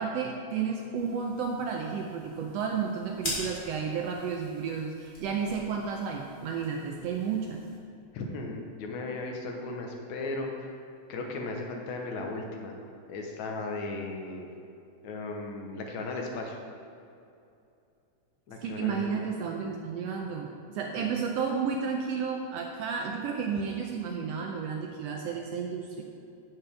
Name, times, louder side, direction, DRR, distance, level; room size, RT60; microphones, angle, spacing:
voice 1, 0.0-7.6 18.6-26.0, right 6 dB, 80° right, 1 dB, 1.5 m, -32 dB
sound 1, 1.0-7.8, equal, 20° left, 1.8 m, -43 dB
voice 2, 8.1-10.7 11.1-12.8 13.1-14.5 15.0-16.6 18.5-19.3 21.0-21.1, left 2 dB, 75° left, 1 dB, 2.3 m, -36 dB
10.5 x 7.3 x 3.4 m, 2.6 s
omnidirectional pair, 3.3 m